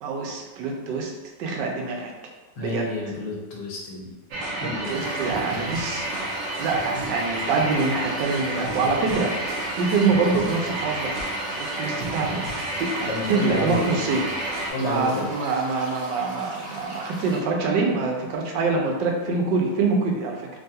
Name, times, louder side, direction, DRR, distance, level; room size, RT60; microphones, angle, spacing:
voice 1, 0.0-2.1 2.6-2.9 4.5-6.0 6.6-9.3 9.7-11.1 11.5-12.4 12.8-20.5, right 4 dB, 85° right, 1 dB, 1.2 m, -25 dB
voice 2, 2.6-4.1 4.6-5.1 13.1-13.9 14.7-15.3, left 2 dB, 80° left, -2 dB, 1.3 m, -30 dB
sound 1, 4.3-14.7, right 2 dB, 70° right, 0.8 m, -30 dB
sound 2, 4.8-17.4, equal, 35° right, 0.8 m, -39 dB
3.3 x 2.3 x 2.7 m, 1.2 s
omnidirectional pair, 1.9 m